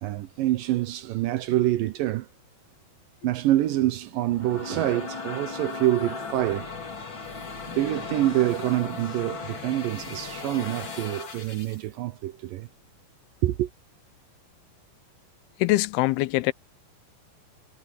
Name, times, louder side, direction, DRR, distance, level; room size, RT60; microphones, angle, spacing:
voice 1, 0.0-2.3 3.2-6.7 7.7-12.7 13.4-13.7, right 15 dB, 75° right, 2.1 m, -26 dB
sound 1, 4.1-11.9, left 5 dB, 35° left, 2.9 m, -37 dB
voice 2, 15.6-16.5, left 19 dB, 85° left, 2.5 m, -23 dB
omnidirectional pair, 4.5 m